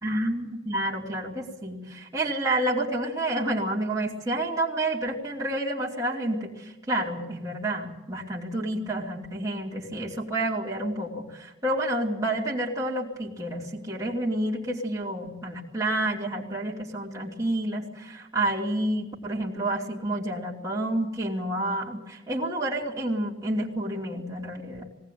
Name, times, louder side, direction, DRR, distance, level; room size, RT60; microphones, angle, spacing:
voice 1, 0.0-24.9, right 1 dB, 20° right, -5 dB, 2.8 m, -29 dB
20.0 x 18.5 x 9.3 m, 0.95 s
head